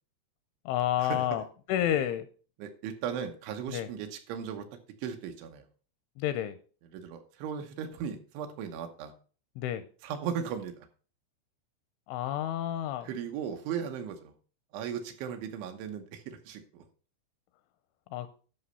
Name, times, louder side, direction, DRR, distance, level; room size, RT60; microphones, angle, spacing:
voice 1, 0.7-2.3 3.7-3.9 6.2-6.6 9.6-9.8 12.1-13.1 18.1-18.3, left 11 dB, 85° left, 12 dB, 2.8 m, -30 dB
voice 2, 2.6-5.7 6.9-9.1 10.0-10.9 13.0-14.3 14.7-16.9, right 7 dB, 75° right, 6 dB, 3.1 m, -37 dB
11.5 x 6.3 x 5.4 m, 0.39 s
omnidirectional pair, 5.9 m